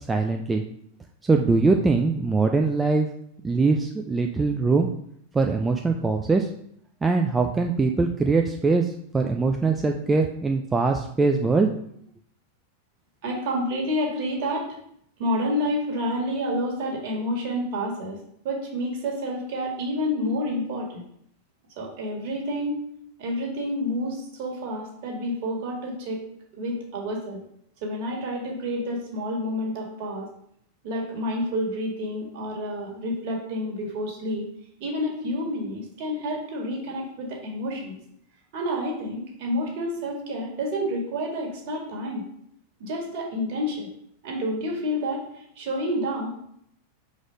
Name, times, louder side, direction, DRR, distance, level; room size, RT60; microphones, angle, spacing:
voice 1, 0.1-0.6 1.2-3.1 3.4-4.9 5.3-6.5 7.0-11.7, right 3 dB, 15° right, 3 dB, 0.4 m, -22 dB
voice 2, 13.2-14.8 15.2-21.0 21.8-22.8 23.2-26.2 26.5-27.4 27.8-30.3 30.8-34.5 34.8-38.0 38.5-42.2 42.8-43.9 44.2-46.4, equal, 45° right, 0 dB, 1.8 m, -29 dB
4.7 x 4.0 x 5.0 m, 0.71 s
figure-of-eight pair, 90°, 0 cm